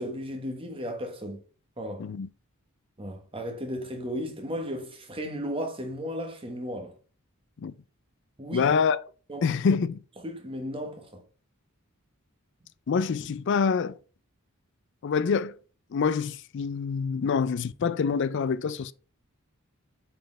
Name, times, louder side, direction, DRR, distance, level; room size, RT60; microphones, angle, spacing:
voice 1, 0.0-1.4 1.8-2.0 3.0-6.9 8.4-8.7 9.3-9.6 10.2-11.2, equal, 25° right, 1.1 m, -35 dB
voice 2, 8.5-9.0 9.4-10.0 12.9-14.0 15.0-15.5 15.9-18.9, left 5 dB, 55° left, 0.3 m, -26 dB
7.7 x 4.2 x 3.3 m
head